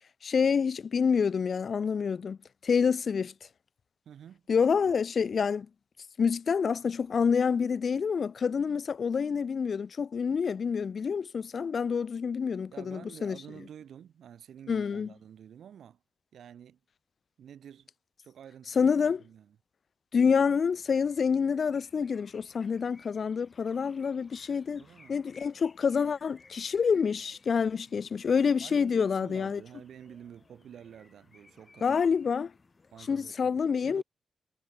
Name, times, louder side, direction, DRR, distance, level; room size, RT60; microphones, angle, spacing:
voice 1, 0.2-2.4 2.6-3.3 4.5-5.7 6.2-13.4 14.7-15.1 18.8-19.2 20.1-24.8 25.1-29.6 31.8-32.5 33.1-34.0, left 6 dB, 45° left, 0.3 m, -27 dB
voice 2, 4.1-4.4 12.7-16.0 16.3-16.8 17.4-17.9 18.2-19.6 24.8-25.2 28.6-32.0 32.9-34.0, right 9 dB, 90° right, 2.3 m, -50 dB
sound 1, 20.7-33.3, left 3 dB, 25° left, 6.7 m, -60 dB
wide cardioid pair, 170°, 0 cm